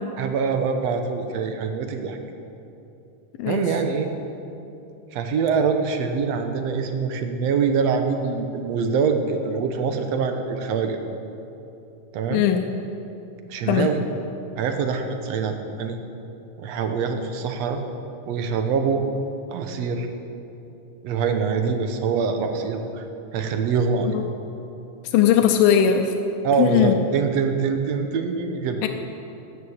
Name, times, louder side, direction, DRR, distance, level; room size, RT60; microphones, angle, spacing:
voice 1, 0.2-2.2 3.4-4.1 5.1-11.0 12.1-12.4 13.5-14.0 14.6-16.0 16.6-17.8 18.3-19.0 19.5-20.1 21.0-23.0 23.3-24.2 26.4-28.8, right 5 dB, 65° right, 6 dB, 1.8 m, -24 dB
voice 2, 3.4-3.8 12.3-12.6 13.7-13.9 24.0-24.2 25.0-26.1 26.6-27.0 28.8-28.9, left 9 dB, 90° left, 4 dB, 2.5 m, -19 dB
14.0 x 9.6 x 8.6 m, 2.9 s
omnidirectional pair, 4.0 m